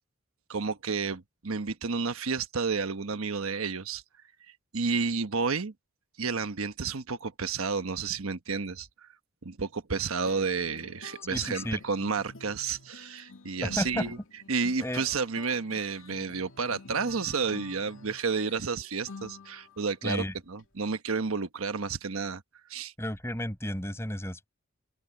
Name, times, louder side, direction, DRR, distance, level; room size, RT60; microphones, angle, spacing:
voice 1, 0.5-4.0 4.7-5.7 6.2-9.1 9.4-14.2 14.5-22.4 22.7-22.9, right 5 dB, 85° right, 1.1 m, -31 dB
sound 1, 10.3-19.9, left 3 dB, 70° left, 2.4 m, -48 dB
voice 2, 11.3-11.8 13.6-14.2 14.8-15.0 20.0-20.3 23.0-24.5, left 1 dB, 10° left, 7.8 m, -33 dB
open air
head